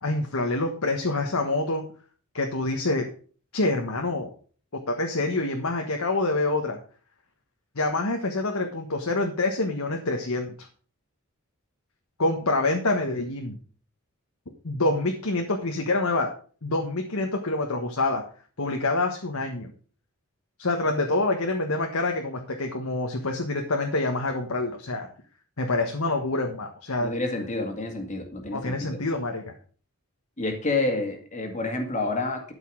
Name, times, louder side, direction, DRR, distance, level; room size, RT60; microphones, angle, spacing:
voice 1, 0.0-1.8 2.3-3.1 3.5-4.3 4.7-6.8 7.7-10.5 12.2-13.6 14.6-16.3 16.6-18.2 18.6-19.7 20.6-25.1 25.6-27.1 28.5-29.5, left 2 dB, 75° left, 3 dB, 1.4 m, -26 dB
voice 2, 27.0-29.0 30.4-32.5, left 2 dB, 35° left, 3 dB, 2.1 m, -29 dB
12.5 x 5.5 x 6.3 m, 0.43 s
head